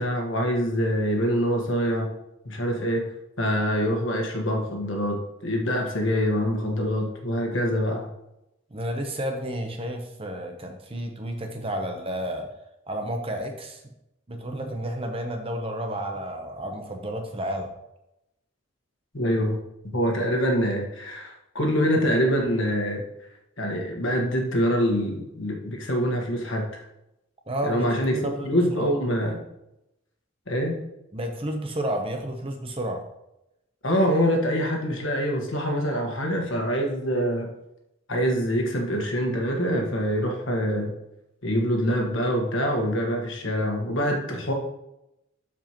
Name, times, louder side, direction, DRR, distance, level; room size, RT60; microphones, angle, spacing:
voice 1, 0.0-2.1 2.4-3.1 3.4-8.1 19.1-19.6 19.9-23.0 23.6-26.8 27.6-29.4 30.5-30.8 33.8-37.5 38.1-41.0 41.4-44.5, equal, 60° left, 1 dB, 1.5 m, -25 dB
voice 2, 8.7-12.5 12.9-13.8 14.3-17.7 27.5-28.9 31.1-33.0, right 1 dB, 25° right, 4 dB, 0.8 m, -31 dB
12.5 x 5.0 x 3.0 m, 0.88 s
head